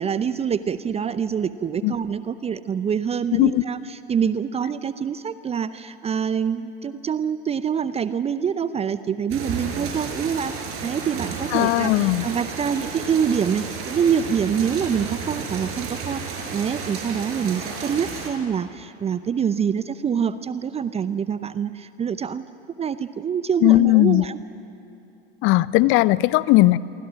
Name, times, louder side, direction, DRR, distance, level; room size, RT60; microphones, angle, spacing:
voice 1, 0.0-10.6 10.8-22.4 22.8-24.4, right 7 dB, 20° right, 14 dB, 0.6 m, -25 dB
voice 2, 3.3-3.6 11.5-12.3 23.6-24.2 25.4-26.8, left 17 dB, 40° left, 19 dB, 0.7 m, -17 dB
sound 1, 9.3-18.3, right 5 dB, 45° right, 5.7 m, -32 dB
27.5 x 23.5 x 6.3 m, 2.9 s
figure-of-eight pair, 80°, 31 cm